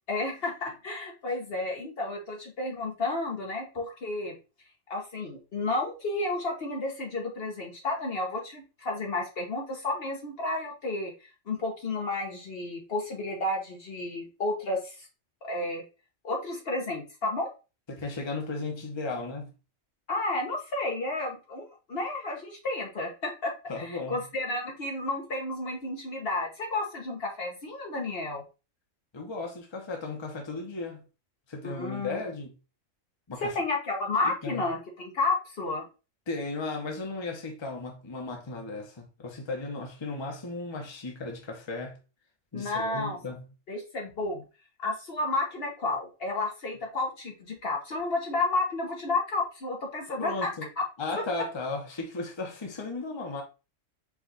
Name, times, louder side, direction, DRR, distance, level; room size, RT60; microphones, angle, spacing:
voice 1, 0.1-4.3 4.9-15.1 15.4-15.8 16.2-17.5 20.1-28.4 31.6-32.2 33.4-35.8 42.5-43.2 43.7-44.4 44.8-50.5, left 2 dB, 55° left, 1.1 m, -31 dB
voice 2, 17.9-19.5 23.7-24.2 29.1-31.0 31.5-32.5 33.3-33.6 34.2-34.6 36.3-42.0 42.5-43.5 50.2-50.7 51.0-53.4, left 3 dB, 25° left, 0.9 m, -35 dB
4.8 x 2.4 x 3.8 m
omnidirectional pair, 1.3 m